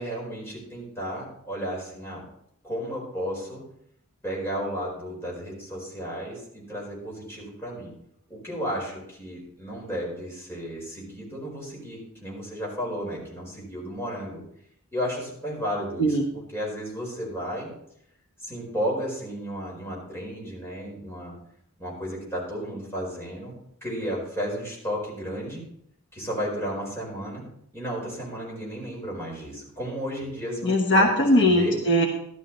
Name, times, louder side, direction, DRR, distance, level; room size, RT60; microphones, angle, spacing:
voice 1, 0.0-2.2 2.6-3.6 4.2-7.9 8.3-14.4 14.9-16.2 16.5-17.7 18.4-21.4 21.8-23.5 23.8-25.6 26.1-27.4 27.7-31.1 31.4-31.8, equal, 10° left, -4 dB, 4.6 m, -33 dB
voice 2, 30.6-32.1, equal, 55° left, 1 dB, 1.2 m, -20 dB
12.5 x 12.5 x 3.1 m, 0.72 s
head